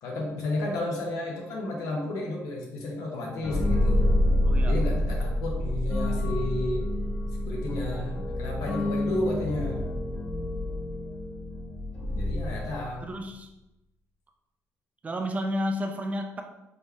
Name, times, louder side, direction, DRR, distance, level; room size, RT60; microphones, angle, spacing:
voice 1, 0.0-4.0 4.6-6.9 7.4-9.8 12.1-13.1, left 2 dB, 80° left, -1 dB, 1.1 m, -32 dB
sound 1, 3.4-13.1, left 1 dB, 20° left, 0.6 m, -27 dB
voice 2, 4.4-4.8 13.0-13.5 15.0-16.4, equal, 25° right, 3 dB, 0.6 m, -31 dB
4.4 x 3.4 x 2.9 m, 0.94 s
cardioid pair, 130°, 6 cm